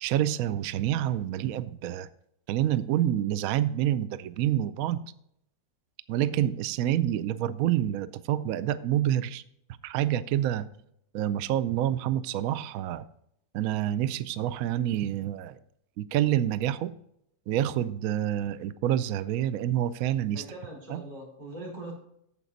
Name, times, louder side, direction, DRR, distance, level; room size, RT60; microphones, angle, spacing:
voice 1, 0.0-2.1 2.5-5.0 6.1-9.4 9.8-10.7 11.1-13.0 13.5-15.6 16.0-16.9 17.5-20.4 20.9-21.0, right 12 dB, 80° right, 15 dB, 0.7 m, -27 dB
voice 2, 20.3-21.9, right 2 dB, 65° right, -2 dB, 3.6 m, -41 dB
9.3 x 7.4 x 3.9 m, 0.73 s
omnidirectional pair, 2.0 m